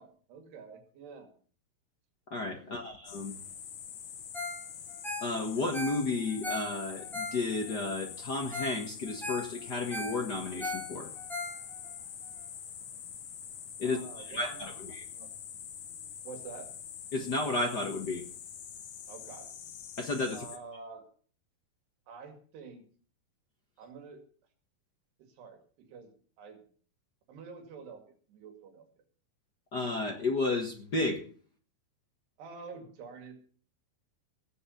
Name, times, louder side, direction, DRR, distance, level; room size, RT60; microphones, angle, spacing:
voice 1, 0.0-1.3 2.6-2.9 13.8-14.6 15.1-15.3 16.2-16.7 19.1-19.5 20.3-21.1 22.1-22.8 23.8-24.2 25.3-25.6 25.9-26.6 27.3-28.9 32.4-33.4, right 5 dB, 90° right, 5 dB, 4.4 m, -48 dB
voice 2, 2.3-3.3 5.2-11.1 13.8-15.0 17.1-18.2 20.0-20.4 29.7-31.2, left 3 dB, 75° left, 2 dB, 0.9 m, -32 dB
sound 1, 3.0-20.6, left 8 dB, 60° left, 2.0 m, -45 dB
Ringtone, 4.3-4.6 4.9-7.8 8.2-8.3 8.5-8.8 9.1-11.9 12.4-12.5, left 2 dB, ahead, 2.8 m, -38 dB
16.5 x 8.0 x 7.0 m, 0.43 s
omnidirectional pair, 4.6 m